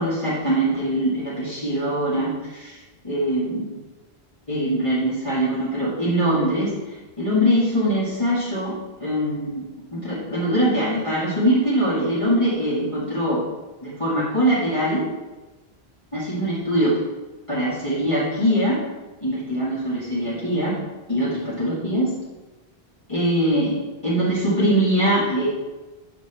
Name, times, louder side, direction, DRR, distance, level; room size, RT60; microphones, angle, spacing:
voice 1, 0.0-3.8 4.5-9.6 9.9-13.4 13.8-15.0 16.1-17.0 17.5-18.8 19.2-20.8 21.1-22.1 23.1-25.5, equal, 30° left, -9 dB, 1.6 m, -22 dB
7.8 x 5.3 x 3.3 m, 1.2 s
omnidirectional pair, 1.1 m